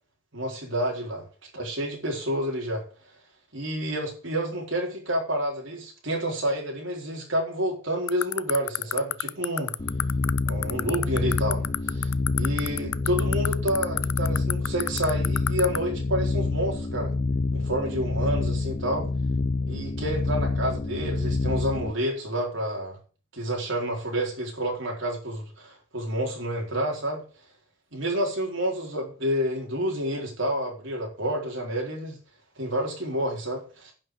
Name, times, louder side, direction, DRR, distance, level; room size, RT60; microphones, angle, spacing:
voice 1, 0.3-1.2 1.5-2.8 3.5-9.7 10.5-17.1 17.5-19.1 19.7-23.0 23.3-27.2 27.9-32.2 32.6-33.9, equal, 60° right, -1 dB, 4.4 m, -29 dB
sound 1, 8.1-15.8, left 13 dB, 85° left, 0.5 m, -25 dB
sound 2, 9.8-21.9, left 3 dB, 30° left, 0.6 m, -27 dB
10.5 x 6.0 x 7.9 m, 0.38 s
head